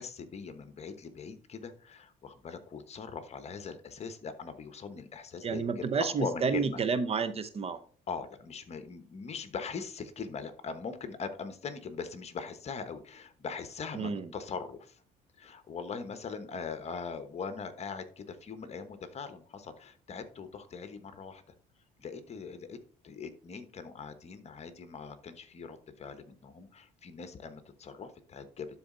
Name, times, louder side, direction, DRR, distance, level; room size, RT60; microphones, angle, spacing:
voice 1, 0.0-5.9 6.2-6.8 8.1-15.0 15.4-21.4 22.0-22.8 23.0-28.7, left 5 dB, 40° left, 1.2 m, -41 dB
voice 2, 5.4-7.8 13.9-14.3, right 5 dB, 35° right, 0.7 m, -30 dB
12.0 x 4.1 x 3.9 m
cardioid pair, 110°, 17 cm